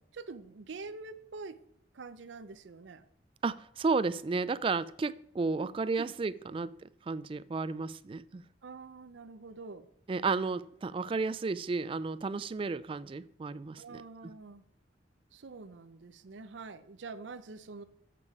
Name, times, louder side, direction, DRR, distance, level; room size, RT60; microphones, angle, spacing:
voice 1, 0.1-1.6 1.9-3.0 5.6-6.1 8.6-9.9 13.8-14.6 15.3-17.8, right 4 dB, 80° right, 12 dB, 0.6 m, -46 dB
voice 2, 3.4-8.4 10.1-14.0, right 4 dB, 30° right, 17 dB, 0.3 m, -33 dB
7.5 x 6.8 x 4.7 m, 0.70 s
head